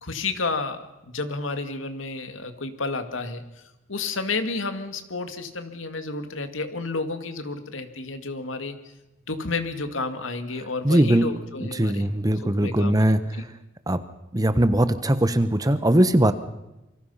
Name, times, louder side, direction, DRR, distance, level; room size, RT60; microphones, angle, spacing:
voice 1, 0.0-3.4 3.9-8.8 9.3-12.1 12.4-13.2, left 3 dB, 85° left, 8 dB, 2.3 m, -31 dB
voice 2, 10.8-11.3 11.6-13.2 13.9-14.0 14.3-16.3, right 1 dB, 20° right, 12 dB, 1.1 m, -20 dB
27.5 x 24.5 x 5.8 m, 0.95 s
head